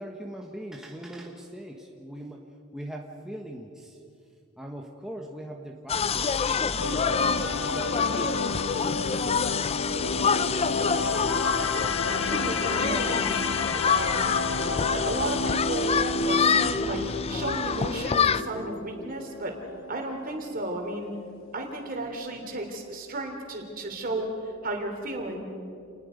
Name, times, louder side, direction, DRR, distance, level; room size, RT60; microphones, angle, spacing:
voice 1, 0.0-2.5 2.7-4.0 4.6-8.9, right 1 dB, 5° right, 0 dB, 1.3 m, -41 dB
sound 1, 5.9-18.4, left 6 dB, 30° left, 0.5 m, -27 dB
sound 2, 6.8-20.9 21.2-21.5, left 3 dB, 70° left, 1.0 m, -31 dB
voice 2, 12.0-13.2 13.8-14.4 14.9-15.9 16.2-17.0 17.3-19.6 19.9-21.1 21.5-25.5, right 1 dB, 45° right, 3 dB, 3.4 m, -33 dB
29.0 x 20.0 x 5.2 m, 2.5 s
head